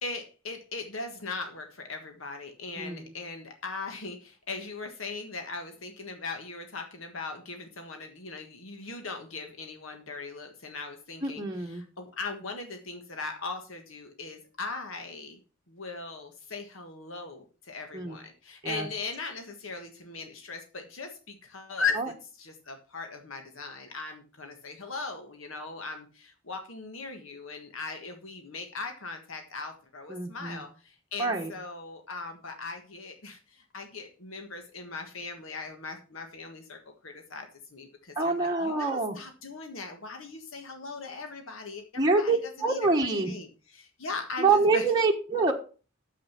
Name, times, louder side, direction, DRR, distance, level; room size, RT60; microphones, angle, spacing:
voice 1, 0.0-15.4 15.7-44.9, left 4 dB, 85° left, 5 dB, 1.5 m, -39 dB
voice 2, 11.2-11.8 17.9-18.2 18.6-18.9 22.0-22.1 30.1-30.6 31.2-31.5 38.2-39.2 42.0-43.4 44.4-45.5, right 3 dB, 20° right, 0 dB, 1.3 m, -26 dB
9.0 x 7.4 x 5.8 m, 0.36 s
head